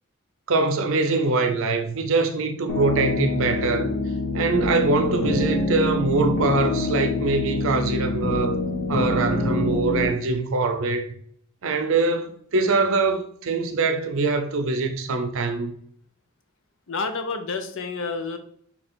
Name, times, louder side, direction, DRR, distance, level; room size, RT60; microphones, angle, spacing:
voice 1, 0.5-4.0 4.3-8.6 8.9-11.1 11.6-15.7, right 3 dB, 60° right, 0.6 m, -23 dB
sound 1, 2.7-10.1, left 2 dB, 85° left, 0.9 m, -25 dB
voice 2, 16.9-18.4, left 4 dB, 60° left, 0.6 m, -29 dB
4.3 x 2.6 x 4.3 m
head